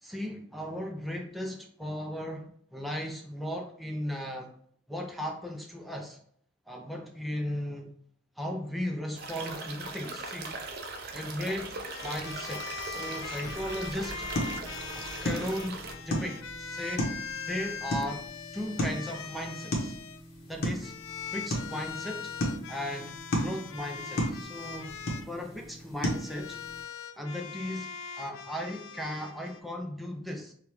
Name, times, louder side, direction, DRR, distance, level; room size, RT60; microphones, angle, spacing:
voice 1, 0.0-4.5 4.9-6.2 6.7-7.9 8.4-10.6 11.1-11.8 12.0-14.2 14.9-17.1 17.5-18.3 18.5-20.0 20.5-20.9 21.3-22.4 22.7-25.0 25.2-26.6 27.2-30.5, equal, ahead, 1 dB, 0.4 m, -36 dB
sound 1, 9.2-15.9, right 3 dB, 50° right, 0.5 m, -40 dB
sound 2, 11.7-20.2 20.8-25.3 26.0-29.6, left 5 dB, 70° left, 0.4 m, -41 dB
sound 3, 13.4-26.8, equal, 50° left, 1.0 m, -36 dB
5.0 x 2.4 x 3.1 m, 0.62 s
head